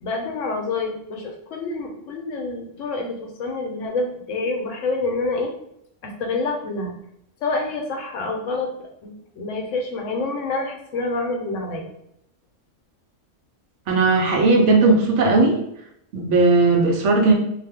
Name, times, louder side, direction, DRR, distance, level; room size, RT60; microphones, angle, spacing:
voice 1, 0.0-5.5 6.0-6.9 7.4-8.7 9.0-11.9, left 3 dB, 80° left, 2 dB, 1.0 m, -27 dB
voice 2, 13.9-15.6 16.1-17.3, right 3 dB, 70° right, 1 dB, 0.9 m, -17 dB
2.5 x 2.1 x 3.4 m, 0.76 s
omnidirectional pair, 1.3 m